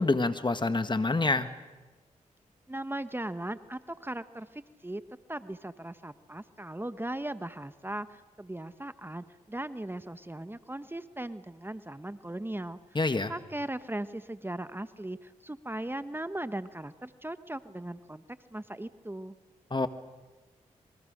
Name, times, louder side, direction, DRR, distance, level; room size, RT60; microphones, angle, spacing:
voice 1, 0.0-1.5 13.0-13.3 19.7-19.9, left 3 dB, 35° left, 10 dB, 1.8 m, -26 dB
voice 2, 2.7-5.0 5.3-12.8 13.3-18.2 18.5-19.3, right 1 dB, 15° right, 12 dB, 1.1 m, -38 dB
27.5 x 23.5 x 6.6 m, 1.2 s
supercardioid pair, 40°, 14 cm